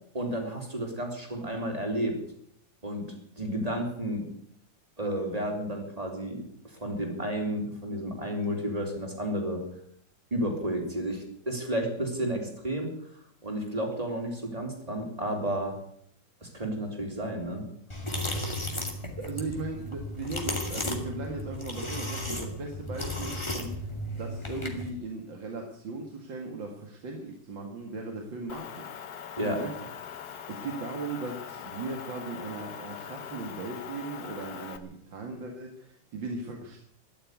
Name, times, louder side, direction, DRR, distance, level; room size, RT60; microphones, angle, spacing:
voice 1, 0.1-2.2 2.8-3.1 3.4-4.3 5.0-9.6 10.3-12.9 13.4-15.8 16.4-17.6 29.4-29.6, right 1 dB, 20° right, 1 dB, 3.8 m, -32 dB
sound 1, 17.9-24.9, left 1 dB, 15° left, 2.5 m, -34 dB
voice 2, 19.2-23.9 24.2-29.0 29.4-29.9 30.2-36.8, right 3 dB, 80° right, 2 dB, 2.7 m, -38 dB
Motor vehicle (road) / Engine, 28.5-34.8, left 8 dB, 60° left, 1.5 m, -42 dB
13.5 x 11.5 x 9.5 m, 0.70 s
omnidirectional pair, 2.0 m